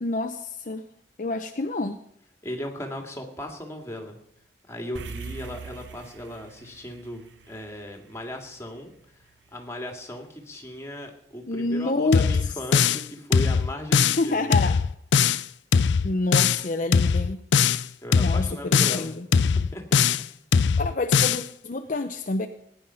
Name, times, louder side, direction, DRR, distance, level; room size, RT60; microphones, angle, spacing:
voice 1, 0.0-0.8 1.2-2.0 11.5-12.2 14.2-14.8 16.0-17.4 18.1-19.3 20.8-22.5, left 2 dB, 45° left, 7 dB, 0.7 m, -28 dB
voice 2, 2.4-4.2 4.7-8.9 9.5-14.5 18.0-19.1 19.5-19.8, left 1 dB, 15° left, 3 dB, 2.3 m, -37 dB
sound 1, 4.9-9.5, right 4 dB, 85° right, 1.0 m, -42 dB
sound 2, 12.1-13.1 13.3-14.2 14.5-15.4 15.7-16.6 16.9-17.8 18.1-19.0 19.3-20.3 20.5-21.4, left 6 dB, 80° left, 0.5 m, -21 dB
18.0 x 10.5 x 5.7 m, 0.74 s
head